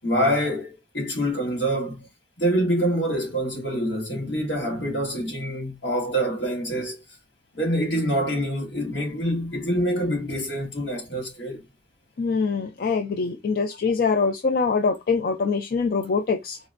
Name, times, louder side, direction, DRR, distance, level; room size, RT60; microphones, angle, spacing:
voice 1, 0.0-2.1 2.4-7.0 7.5-11.6, equal, 80° left, 1.5 m, -26 dB
voice 2, 12.2-16.6, left 4 dB, 55° left, 0.4 m, -24 dB
4.1 x 2.1 x 2.4 m
head